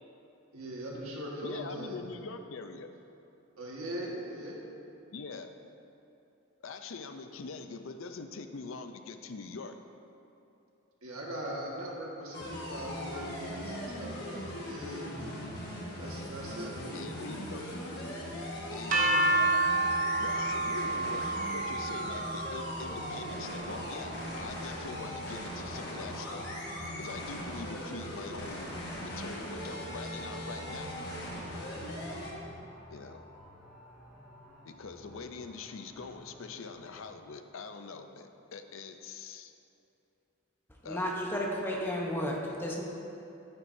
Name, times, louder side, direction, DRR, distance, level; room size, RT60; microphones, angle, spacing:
voice 1, 0.5-2.0 3.6-4.6 11.0-15.1 16.0-16.7, equal, 85° right, -3 dB, 1.7 m, -40 dB
voice 2, 1.4-2.9 5.1-5.5 6.6-9.8 16.9-17.7 18.7-19.2 20.0-21.2 21.5-26.4 27.0-30.9 32.9-33.3 34.6-39.5 40.8-41.2, left 4 dB, 70° left, 7 dB, 0.5 m, -43 dB
sound 1, 12.3-32.3, equal, 50° left, 1.5 m, -39 dB
sound 2, 18.9-24.8, right 2 dB, 40° right, 1.0 m, -30 dB
sound 3, 20.3-37.0, equal, 15° right, 2.1 m, -54 dB
voice 3, 40.8-42.8, equal, 10° left, -2 dB, 0.9 m, -33 dB
11.5 x 9.0 x 2.7 m, 2.8 s
head